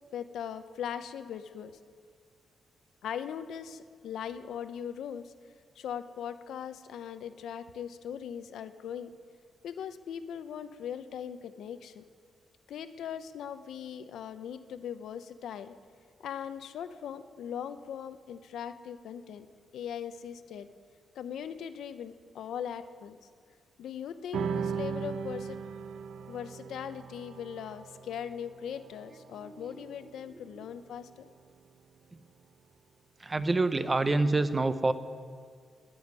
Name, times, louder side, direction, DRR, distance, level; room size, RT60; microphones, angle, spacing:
voice 1, 0.1-1.7 3.0-5.3 5.8-9.1 9.6-12.0 12.7-15.7 16.2-19.5 19.7-20.7 21.1-23.2 23.8-25.6 26.3-31.3, left 8 dB, 80° left, 11 dB, 0.8 m, -40 dB
sound 1, 24.3-31.1, right 6 dB, 65° right, 0.8 m, -38 dB
voice 2, 29.3-29.7 32.1-32.2 33.2-34.9, right 2 dB, 20° right, 12 dB, 0.6 m, -27 dB
20.0 x 7.2 x 9.6 m, 2.1 s
wide cardioid pair, 165°, 0 cm